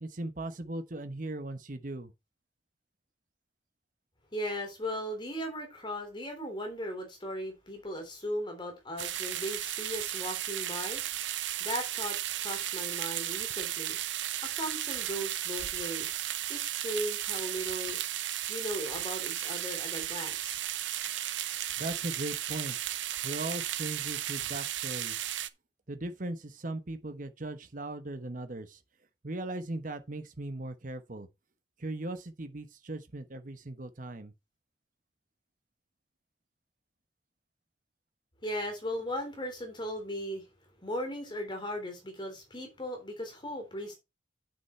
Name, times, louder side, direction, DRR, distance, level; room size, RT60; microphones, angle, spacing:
voice 1, 0.0-2.1 21.8-22.8 23.2-25.3 25.9-28.8 29.2-31.3 31.8-34.3, right 2 dB, 45° right, 1.0 m, -38 dB
voice 2, 4.3-11.0 11.6-14.0 14.4-16.2 16.5-18.0 18.5-20.6 38.4-40.4 40.8-43.9, equal, 25° left, 3.4 m, -37 dB
sound 1, 9.0-25.5, right 12 dB, 90° right, 0.7 m, -35 dB
8.4 x 6.6 x 4.4 m
head